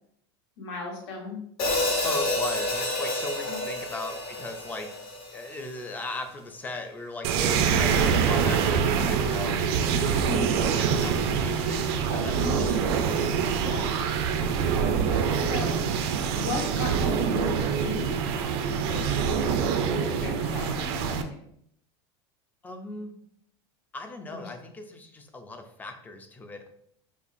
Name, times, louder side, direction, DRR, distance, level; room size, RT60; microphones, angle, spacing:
voice 1, 0.6-1.4 3.4-3.6 10.2-10.5 12.4-12.6 13.6-13.8 15.1-15.7 16.0-18.3 18.7-21.2 24.3-24.4, left 3 dB, 80° left, 0 dB, 1.3 m, -36 dB
Hi-hat, 1.6-5.8, left 1 dB, 40° left, 0.8 m, -29 dB
voice 2, 2.0-4.9 5.3-9.6 10.1-13.2 22.6-23.1 23.9-26.7, left 2 dB, 10° left, 5 dB, 0.4 m, -38 dB
sound 1, 7.2-21.2, right 6 dB, 70° right, 0.5 m, -25 dB
5.2 x 2.4 x 2.5 m, 0.71 s
supercardioid pair, 145°, 14 cm